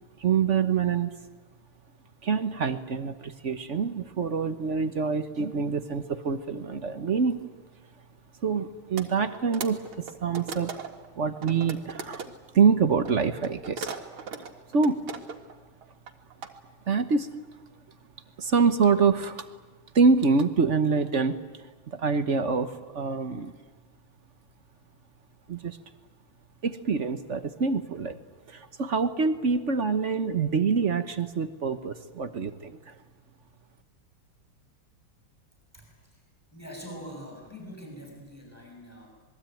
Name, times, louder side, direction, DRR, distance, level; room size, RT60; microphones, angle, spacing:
voice 1, 0.2-1.1 2.2-7.4 8.4-9.8 10.2-10.7 11.2-12.2 12.5-13.9 14.7-15.0 16.9-17.3 18.4-19.5 19.9-23.5 25.5-25.8 26.6-28.2 28.5-32.9, right 5 dB, 45° right, 10 dB, 1.1 m, -25 dB
sound 1, 9.0-9.1 9.3-11.1 11.4-12.3 13.1-15.5 15.8-16.5, right 5 dB, 80° right, 2.7 m, -37 dB
voice 2, 35.7-36.2 36.5-39.1, equal, 5° right, 0 dB, 6.9 m, -44 dB
26.5 x 21.5 x 9.2 m, 1.4 s
omnidirectional pair, 2.3 m